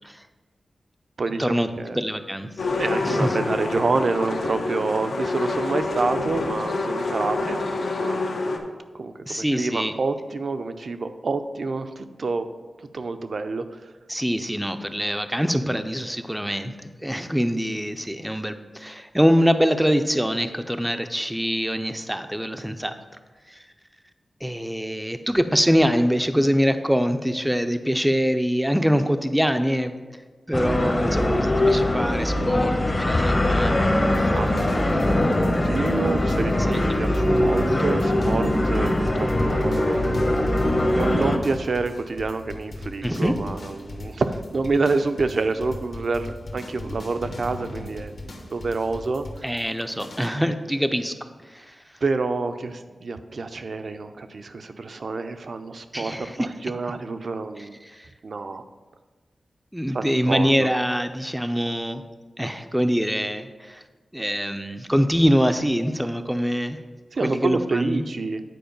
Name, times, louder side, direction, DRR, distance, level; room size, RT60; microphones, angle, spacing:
voice 1, 1.2-2.0 2.8-8.3 8.9-12.5 12.9-13.9 34.3-40.6 40.9-49.3 52.0-57.8 58.2-58.6 59.9-60.7 67.1-68.4, right 3 dB, 60° right, 9 dB, 0.5 m, -28 dB
voice 2, 1.9-2.5 3.0-3.4 9.3-9.9 14.1-22.9 23.5-23.6 24.4-29.9 30.5-33.8 34.1-34.2 36.7-37.1 43.0-43.3 49.4-51.1 51.5-51.8 55.9-56.5 57.6-58.1 59.7-62.0 62.4-63.8 64.1-66.8 67.2-68.0, equal, 5° right, 8 dB, 0.4 m, -24 dB
sound 1, 2.6-8.6, left 3 dB, 90° left, 0.9 m, -27 dB
sound 2, 30.5-41.4, left 1 dB, 30° left, 0.8 m, -21 dB
sound 3, 34.1-50.3, left 2 dB, 65° left, 1.1 m, -39 dB
9.3 x 4.7 x 5.2 m, 1.3 s
wide cardioid pair, 130°, 0 cm